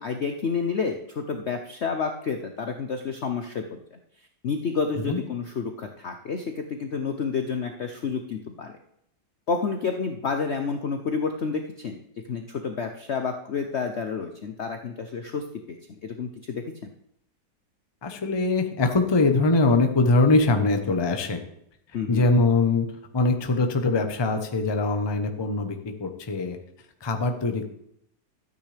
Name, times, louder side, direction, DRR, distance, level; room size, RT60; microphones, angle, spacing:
voice 1, 0.0-3.8 4.4-8.7 9.5-12.0 12.3-15.8 16.0-16.9 21.9-22.3, left 5 dB, 55° left, 5 dB, 0.7 m, -29 dB
voice 2, 18.0-21.4 22.1-22.9 23.1-26.6 27.0-27.7, left 3 dB, 25° left, 5 dB, 0.6 m, -22 dB
13.0 x 9.0 x 3.4 m, 0.76 s
omnidirectional pair, 2.0 m